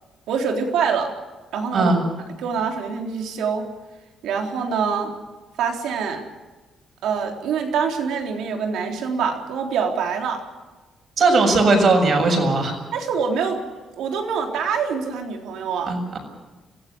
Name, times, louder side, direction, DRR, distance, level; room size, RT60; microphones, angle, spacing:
voice 1, 0.3-1.1 1.5-1.9 2.4-3.7 4.2-5.1 5.6-6.3 7.0-10.4 12.9-13.7 14.0-15.9, right 6 dB, 90° right, 2 dB, 3.8 m, -25 dB
voice 2, 11.2-12.7 15.9-16.2, right 3 dB, 55° right, 4 dB, 7.2 m, -18 dB
24.5 x 16.5 x 8.0 m, 1.2 s
cardioid pair, 100°, 0 cm